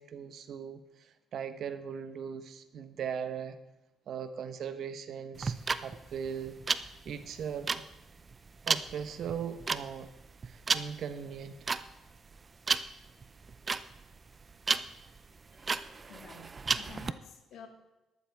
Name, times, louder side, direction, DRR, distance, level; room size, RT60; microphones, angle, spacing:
voice 1, 0.0-3.6 4.1-7.8 8.7-10.1 10.4-11.7, right 7 dB, 70° right, 10 dB, 1.1 m, -39 dB
sound 1, 5.4-17.1, right 4 dB, 35° right, 0.6 m, -33 dB
voice 2, 16.1-17.7, left 6 dB, 80° left, 4 dB, 2.1 m, -51 dB
13.5 x 12.5 x 3.6 m, 1.0 s
cardioid pair, 90°, 0 cm